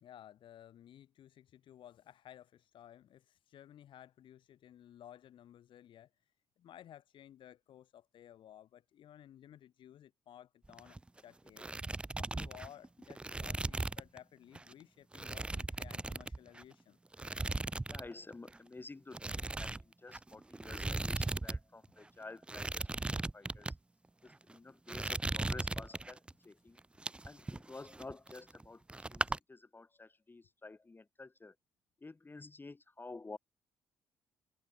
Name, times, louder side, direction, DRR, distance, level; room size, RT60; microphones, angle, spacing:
voice 1, 0.0-11.7 12.2-17.0 24.6-24.7, left 11 dB, 65° left, 2.2 m, -56 dB
sound 1, 10.6-11.2 11.5-14.2 14.5-14.7 15.1-16.7 17.1-18.1 18.3-18.6 19.1-21.6 21.8-21.9 22.4-23.8 24.3-24.5 24.9-26.3 26.8-28.6 28.9-29.4, right 2 dB, 10° right, 0.3 m, -38 dB
voice 2, 17.9-23.7 24.2-26.8 27.2-28.8 29.1-31.5 32.0-33.4, left 3 dB, 20° left, 0.8 m, -51 dB
hypercardioid pair, 50°, 9 cm